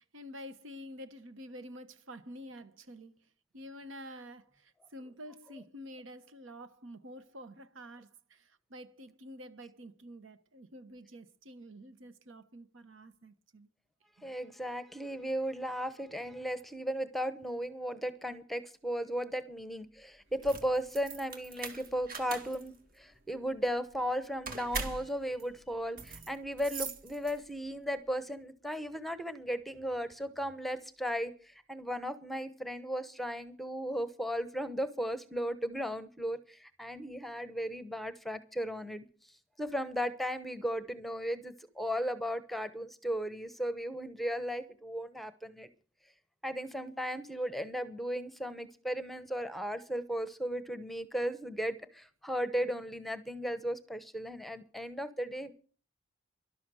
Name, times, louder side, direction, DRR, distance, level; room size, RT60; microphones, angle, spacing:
voice 1, 0.0-3.1 3.5-13.7 14.2-14.3, equal, 75° right, 1.2 m, -49 dB
voice 2, 14.2-39.0 39.6-45.7 46.4-55.5, equal, ahead, 0.9 m, -36 dB
sound 1, 20.3-27.7, right 4 dB, 45° right, 2.0 m, -42 dB
13.0 x 12.0 x 6.3 m
head